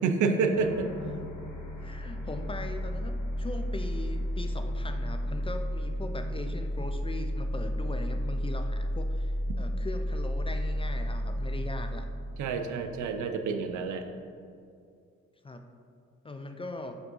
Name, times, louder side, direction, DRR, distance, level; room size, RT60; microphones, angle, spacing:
voice 1, 0.0-0.9 12.4-14.1, right 4 dB, 75° right, 6 dB, 0.6 m, -28 dB
sound 1, 0.5-13.2, equal, 65° left, 1.5 m, -32 dB
voice 2, 1.8-12.1 15.4-15.6 16.2-17.0, left 2 dB, 20° left, 6 dB, 0.4 m, -40 dB
6.0 x 3.6 x 5.3 m, 2.4 s
cardioid pair, 90°, 30 cm